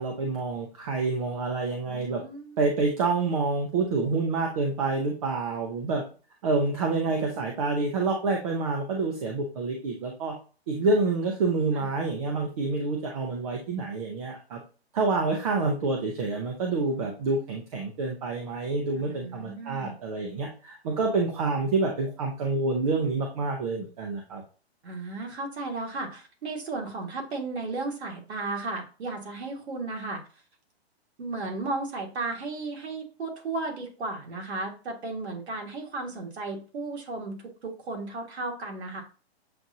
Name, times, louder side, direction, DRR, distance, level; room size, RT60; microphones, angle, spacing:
voice 1, 0.0-2.2 2.6-6.0 6.4-10.3 10.7-14.6 14.9-24.4, right 3 dB, 35° right, 2 dB, 0.7 m, -27 dB
voice 2, 1.9-2.6 6.9-7.1 11.7-11.9 19.0-20.0 24.8-30.2 31.2-39.0, right 3 dB, 80° right, 1 dB, 1.9 m, -34 dB
7.6 x 2.6 x 2.7 m, 0.36 s
hypercardioid pair, 165°, 32 cm